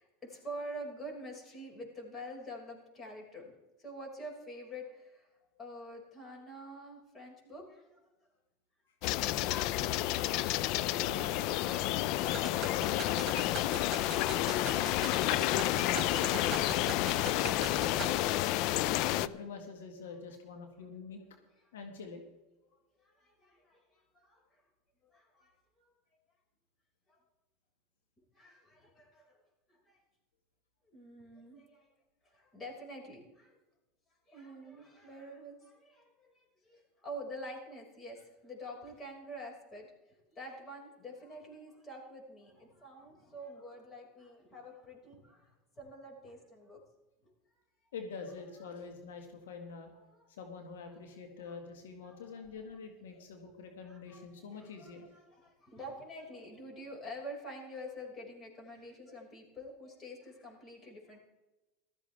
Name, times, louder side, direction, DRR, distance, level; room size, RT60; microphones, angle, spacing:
voice 1, 0.0-3.5 3.8-5.3 5.6-8.0 23.0-24.6 25.0-25.9 27.1-27.2 28.3-29.3 29.7-30.0 30.9-31.9 32.2-33.6 34.3-39.9 40.4-46.8 47.2-47.3 48.7-48.8 49.9-50.2 51.4-51.6 52.1-52.4 53.9-54.2 54.5-61.2, equal, 25° left, 0 dB, 5.4 m, -47 dB
sound 1, 9.0-19.3, left 15 dB, 60° left, 0.5 m, -30 dB
voice 2, 11.0-13.9 14.4-14.9 15.4-17.4 17.7-18.4 19.1-21.2 21.7-22.2 47.9-49.9 50.3-55.1, left 5 dB, 85° left, 4 dB, 1.8 m, -46 dB
sound 2, 12.3-18.2, right 8 dB, 35° right, 3.4 m, -43 dB
16.0 x 13.5 x 3.4 m, 1.0 s
hypercardioid pair, 105°, 0 cm